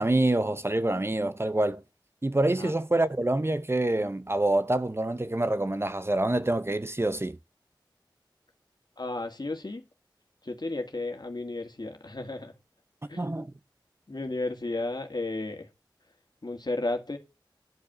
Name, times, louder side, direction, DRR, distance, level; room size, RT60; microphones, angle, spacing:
voice 1, 0.0-1.8 2.2-7.4 13.2-13.5, right 1 dB, 30° right, 0.7 m, -26 dB
voice 2, 9.0-9.8 10.4-12.5 13.1-13.2 14.1-15.7 16.4-17.2, left 2 dB, 55° left, 2.0 m, -33 dB
10.5 x 5.2 x 7.4 m
wide cardioid pair, 50°, 8 cm